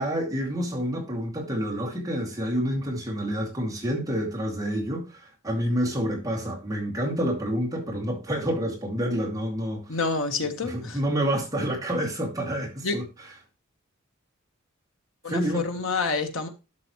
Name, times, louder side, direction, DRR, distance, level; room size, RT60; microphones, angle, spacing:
voice 1, 0.0-10.0 10.6-13.0 15.3-15.7, equal, 15° right, 2.5 m, -28 dB
voice 2, 9.9-11.0 12.8-13.0 15.2-16.5, left 4 dB, 65° left, 1.4 m, -28 dB
12.0 x 6.7 x 3.1 m
head